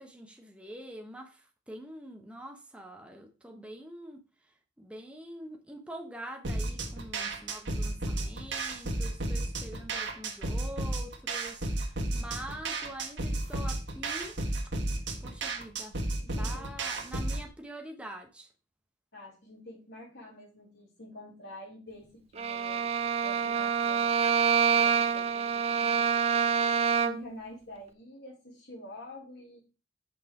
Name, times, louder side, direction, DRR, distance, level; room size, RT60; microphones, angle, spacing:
voice 1, 0.0-4.2 4.8-14.3 15.2-16.0 16.4-18.5, right 1 dB, 5° right, 3 dB, 0.8 m, -45 dB
sound 1, 6.4-17.5, right 2 dB, 70° right, 1.6 m, -33 dB
voice 2, 16.2-16.7 19.1-22.9 23.2-24.2 24.7-26.1 27.0-29.6, left 1 dB, 60° left, -7 dB, 3.9 m, -47 dB
Bowed string instrument, 22.4-27.4, right 7 dB, 35° right, 0.5 m, -26 dB
6.2 x 5.5 x 4.7 m, 0.33 s
head